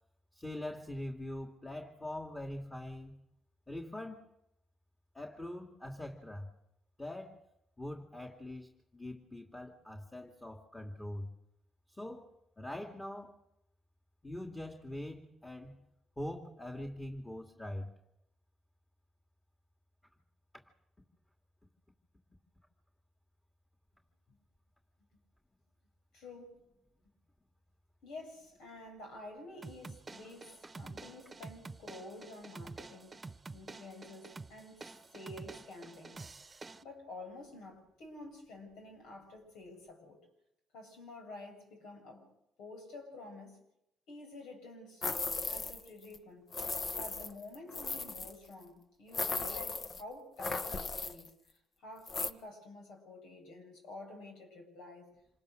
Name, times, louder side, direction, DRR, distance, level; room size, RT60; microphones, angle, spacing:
voice 1, 0.3-3.2 3.7-4.3 5.1-6.5 7.0-7.4 7.8-11.3 11.9-13.4 14.2-15.8 16.2-17.9, left 1 dB, 15° left, 2.6 m, -43 dB
voice 2, 26.1-26.5 28.0-36.2 36.8-40.2 40.7-42.3 42.6-43.6 44.1-45.1 45.4-46.5 46.9-51.3 51.8-55.1, left 2 dB, 85° left, 7.5 m, -50 dB
sound 1, 29.6-36.8, right 3 dB, 25° right, 1.1 m, -49 dB
sound 2, 45.0-45.9 46.1-46.2 46.5-48.3 49.1-50.0 50.4-51.3 52.1-52.3, left 4 dB, 45° left, 1.3 m, -37 dB
27.0 x 19.0 x 6.7 m
cardioid pair, 90°, 0 cm